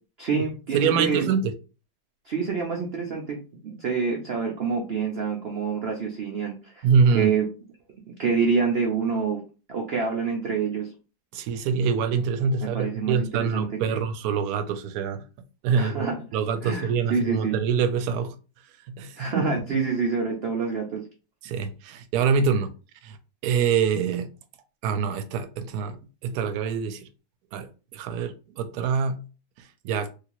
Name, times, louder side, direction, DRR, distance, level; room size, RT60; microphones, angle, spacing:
voice 1, 0.2-1.3 2.3-6.9 7.1-7.5 8.2-9.4 9.7-10.9 12.6-14.0 15.8-16.2 16.6-17.6 19.2-21.1, right 5 dB, 85° right, 0.5 m, -27 dB
voice 2, 0.7-1.5 6.8-7.3 11.3-15.2 15.6-16.1 16.3-18.3 19.0-19.4 21.4-22.7 23.0-23.2 23.4-24.3 24.8-27.0 27.5-29.2 29.8-30.1, right 6 dB, 70° right, 1.0 m, -25 dB
3.3 x 2.8 x 2.9 m
omnidirectional pair, 1.9 m